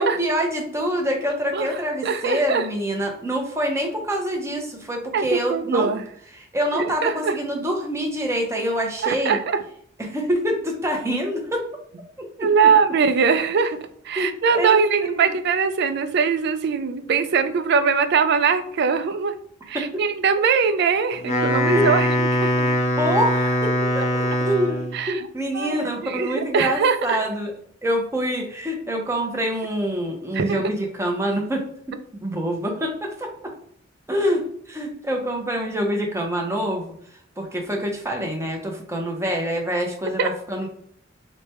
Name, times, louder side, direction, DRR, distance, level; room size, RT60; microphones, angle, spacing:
voice 1, 0.0-5.9 6.3-9.4 10.0-11.6 12.2-12.7 14.2-15.3 19.7-20.0 21.7-21.9 22.6-22.7 23.0-24.8 25.1-27.5 27.8-31.6 32.1-33.5 34.1-36.9 37.4-40.7, equal, 15° right, 1 dB, 0.7 m, -26 dB
voice 2, 2.0-2.6 5.1-6.0 7.0-7.3 9.0-9.6 12.4-13.8 14.1-19.3 19.7-22.7 24.9-25.3 25.5-27.2 30.3-30.6 40.2-40.3, right 5 dB, 55° right, 10 dB, 0.4 m, -21 dB
Wind instrument woodwind instrument, 21.1-25.0, equal, 35° left, 0.6 m, -22 dB
3.2 x 2.1 x 4.2 m, 0.64 s
head